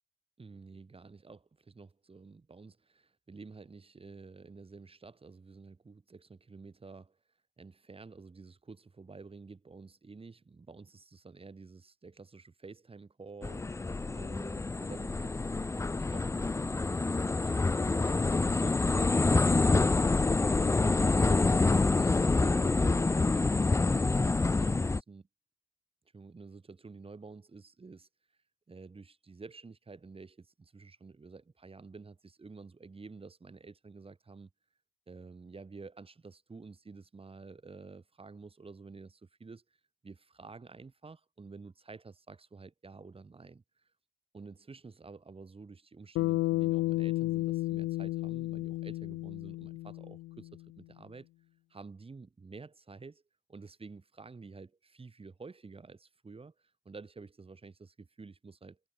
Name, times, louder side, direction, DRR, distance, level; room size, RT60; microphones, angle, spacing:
voice 1, 0.4-7.2 7.6-17.0 17.3-19.9 20.2-25.3 26.1-28.1 28.7-34.5 35.1-39.6 40.0-43.9 44.3-51.3 51.7-53.2 53.5-58.8, right 4 dB, 30° right, 6.3 m, -50 dB
sound 1, 13.4-25.0, left 3 dB, 15° left, 0.5 m, -27 dB
Bass guitar, 46.2-50.6, left 18 dB, 85° left, 0.5 m, -32 dB
cardioid pair, 90°, 20 cm